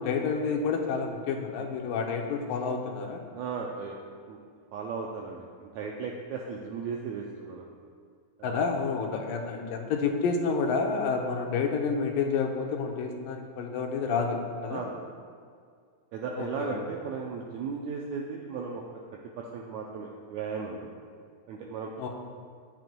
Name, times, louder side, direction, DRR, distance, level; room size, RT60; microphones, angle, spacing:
voice 1, 0.0-3.2 8.4-14.8 16.4-16.8 22.0-22.1, left 5 dB, 85° left, 2 dB, 2.4 m, -29 dB
voice 2, 3.3-4.0 4.2-4.4 4.7-7.7 8.4-8.7 14.7-14.9 16.1-18.8 19.4-20.9 21.5-22.1, right 5 dB, 85° right, -1 dB, 1.6 m, -36 dB
10.5 x 9.2 x 2.2 m, 2.1 s
omnidirectional pair, 3.9 m